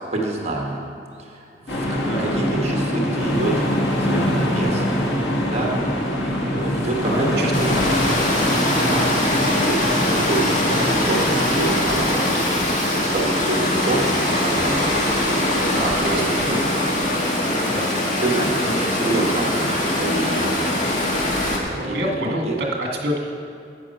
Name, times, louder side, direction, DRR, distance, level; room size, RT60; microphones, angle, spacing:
voice 1, 0.1-0.8 1.2-7.8 8.8-12.5 12.8-16.4 18.2-21.0 21.6-22.0 22.2-22.6, right 2 dB, 35° right, -1 dB, 1.5 m, -27 dB
sound 1, 1.7-12.0, left 1 dB, 90° left, 2.0 m, -24 dB
voice 2, 6.4-7.8 15.7-16.7 17.6-17.9 21.7-23.2, equal, 60° right, 0 dB, 1.7 m, -28 dB
Water, 7.5-21.6, left 1 dB, 45° left, 1.8 m, -22 dB
11.0 x 9.2 x 5.6 m, 2.5 s
head